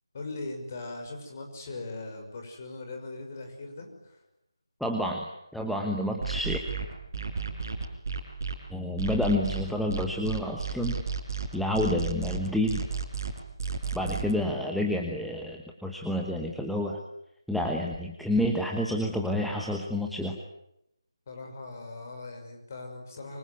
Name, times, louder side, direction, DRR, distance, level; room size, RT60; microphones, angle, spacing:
voice 1, 0.1-4.2 21.3-23.4, left 2 dB, 30° left, 4 dB, 6.0 m, -40 dB
voice 2, 4.8-5.3 5.5-6.6 8.7-10.9 11.5-12.8 13.9-17.0 17.5-20.4, left 1 dB, ahead, 0 dB, 1.2 m, -29 dB
sound 1, 6.2-8.5 9.0-14.3, right 5 dB, 40° right, 5.0 m, -32 dB
24.5 x 24.5 x 9.6 m, 0.81 s
figure-of-eight pair, 160°, 3 cm